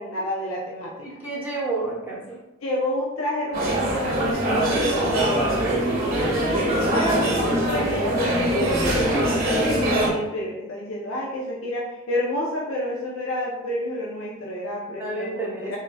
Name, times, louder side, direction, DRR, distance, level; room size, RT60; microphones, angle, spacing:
voice 1, 0.0-0.9 2.6-5.7 6.4-15.8, left 1 dB, 80° left, -4 dB, 0.6 m, -29 dB
voice 2, 1.0-2.4 14.9-15.8, right 2 dB, 10° right, -6 dB, 1.0 m, -30 dB
sound 1, 3.5-10.1, right 1 dB, 45° right, 0.9 m, -23 dB
4.0 x 3.5 x 2.2 m, 0.99 s
head